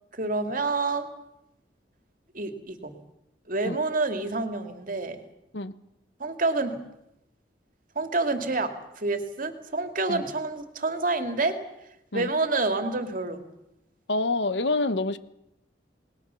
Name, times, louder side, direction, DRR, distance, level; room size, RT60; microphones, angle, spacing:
voice 1, 0.2-1.1 2.3-3.0 3.5-5.2 6.2-6.8 7.9-11.6 12.1-13.4, right 3 dB, 50° right, 7 dB, 2.6 m, -28 dB
voice 2, 14.1-15.2, left 2 dB, 75° left, 13 dB, 1.2 m, -27 dB
28.0 x 20.0 x 7.0 m, 0.85 s
head